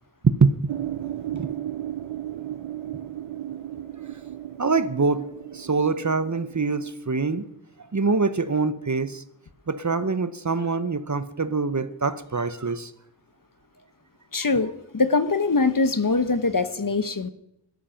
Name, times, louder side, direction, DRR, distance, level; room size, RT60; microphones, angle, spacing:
voice 1, 0.4-0.8 1.3-1.5 4.6-7.5 7.9-9.2 9.7-12.9, right 4 dB, 35° right, 13 dB, 1.0 m, -24 dB
sound 1, 0.7-6.9, right 12 dB, 85° right, 0.7 m, -35 dB
voice 2, 14.3-17.3, left 3 dB, 45° left, 12 dB, 1.2 m, -23 dB
16.5 x 13.5 x 5.9 m, 0.80 s
wide cardioid pair, 75°, 47 cm